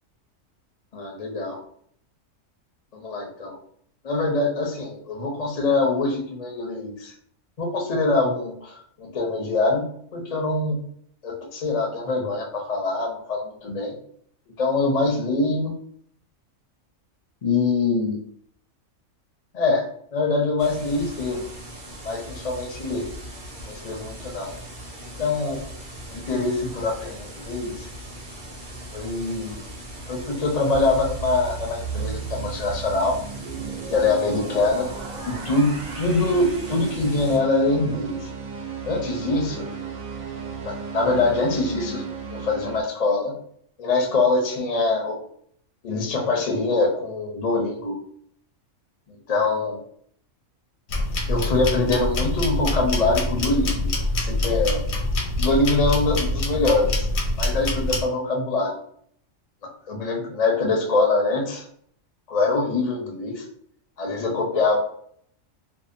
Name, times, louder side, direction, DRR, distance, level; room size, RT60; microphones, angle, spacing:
voice 1, 0.9-1.6 2.9-3.6 4.0-7.1 7.6-9.9 10.1-10.8 11.2-14.0 14.6-15.8 17.4-18.2 19.5-21.5 22.0-23.1 23.7-24.5 25.0-25.7 26.1-27.9 28.9-29.6 30.1-33.2 33.9-34.9 35.2-38.3 38.8-39.7 40.6-42.0 42.3-43.3 43.8-45.2 45.8-48.0 49.1-49.8 51.3-54.8 55.4-57.1 57.4-58.8 59.9-61.6 62.3-63.4 64.0-64.8, left 3 dB, 55° left, 0 dB, 0.4 m, -24 dB
sound 1, 20.6-37.4, right 1 dB, 50° right, 0.7 m, -39 dB
sound 2, 30.7-42.8, right 6 dB, 85° right, 1.0 m, -34 dB
sound 3, 50.9-58.1, left 1 dB, 80° left, 1.0 m, -25 dB
2.7 x 2.1 x 2.5 m, 0.64 s
omnidirectional pair, 1.4 m